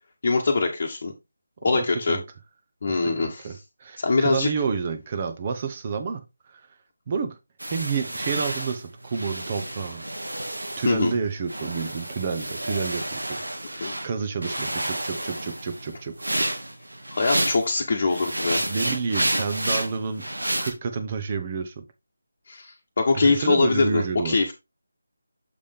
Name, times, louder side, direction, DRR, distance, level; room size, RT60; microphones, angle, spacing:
voice 1, 0.2-1.1 1.6-2.2 2.8-3.4 4.0-4.5 10.8-11.1 13.8-14.0 17.1-18.6 22.5-24.5, left 3 dB, 45° left, 1.2 m, -23 dB
voice 2, 1.6-2.2 2.9-6.2 6.5-6.6 7.1-7.4 7.7-10.0 10.8-16.1 18.2-18.3 18.7-20.3 20.6-21.8 23.1-24.4, right 5 dB, 30° right, 1.1 m, -29 dB
sound 1, 7.6-11.2 11.5-14.1 14.4-17.7 18.1-20.7, right 1 dB, 80° right, 1.8 m, -30 dB
7.1 x 5.1 x 3.6 m
figure-of-eight pair, 160°, 0 cm